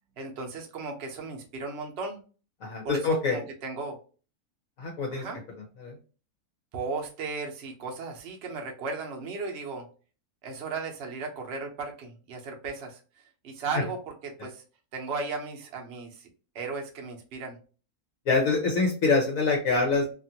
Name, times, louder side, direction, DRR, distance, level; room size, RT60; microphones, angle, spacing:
voice 1, 0.2-2.2 2.8-4.0 5.1-5.4 6.7-9.9 10.4-13.0 13.4-14.6 14.9-16.3 16.5-17.6, right 4 dB, 50° right, 2 dB, 0.9 m, -36 dB
voice 2, 2.6-3.4 4.8-5.2 5.8-5.9 18.3-20.1, left 3 dB, 65° left, -1 dB, 1.1 m, -25 dB
2.9 x 2.5 x 2.7 m, 0.36 s
omnidirectional pair, 1.6 m